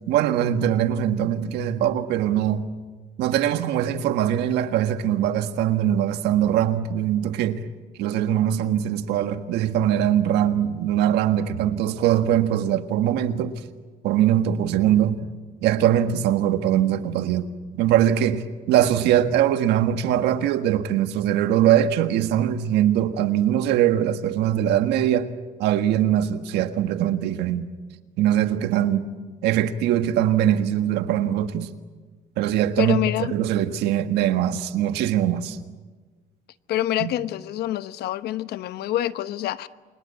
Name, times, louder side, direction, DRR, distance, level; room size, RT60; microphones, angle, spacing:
voice 1, 0.1-2.6 3.2-7.6 8.0-13.6 14.0-15.3 15.6-17.5 17.7-25.3 25.6-27.7 28.2-29.1 29.4-31.7 32.4-33.0 33.3-35.6 37.0-37.1, right 11 dB, 85° right, 1.6 m, -22 dB
voice 2, 32.8-33.4 36.7-39.7, left 13 dB, 75° left, 1.0 m, -26 dB
29.0 x 24.0 x 8.4 m
cardioid pair, 110°, 17 cm